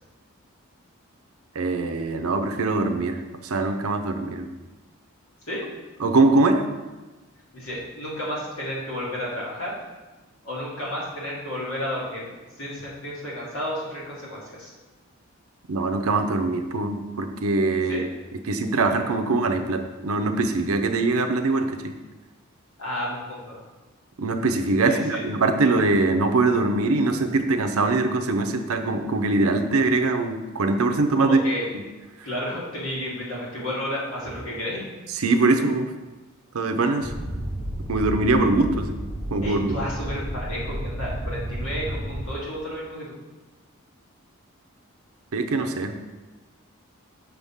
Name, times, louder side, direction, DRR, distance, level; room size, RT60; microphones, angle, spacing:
voice 1, 1.6-3.2 3.4-4.5 6.0-6.7 15.7-18.1 18.5-21.9 24.2-31.4 35.2-35.9 36.5-37.1 37.9-39.0 39.3-39.9 45.3-46.0, right 3 dB, 80° right, 7 dB, 0.6 m, -22 dB
voice 2, 7.5-9.7 10.4-12.3 12.6-14.7 17.9-18.0 22.8-23.6 24.8-25.2 31.2-31.7 32.2-34.8 39.4-43.1, left 1 dB, 80° left, -6 dB, 2.4 m, -32 dB
sound 1, 37.0-42.2, right 1 dB, 25° right, 0.7 m, -31 dB
6.9 x 3.6 x 5.6 m, 1.2 s
head